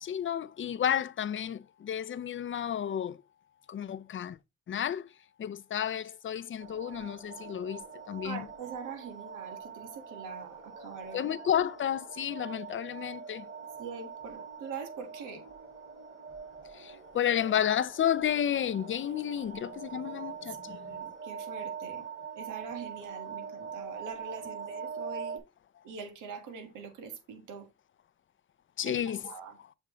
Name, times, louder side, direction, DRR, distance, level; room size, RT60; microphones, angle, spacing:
voice 1, 0.0-3.2 3.7-4.4 4.7-5.1 5.4-8.4 11.1-13.5 16.8-20.8 28.8-29.2, left 9 dB, 40° left, 0.6 m, -31 dB
sound 1, 6.6-25.4, right 6 dB, 45° right, 3.4 m, -43 dB
voice 2, 8.2-11.4 13.8-15.4 20.7-22.0 22.3-25.4 25.8-27.7 28.8-29.6, right 5 dB, 85° right, 1.6 m, -43 dB
7.0 x 3.6 x 4.9 m
cardioid pair, 90°, 30 cm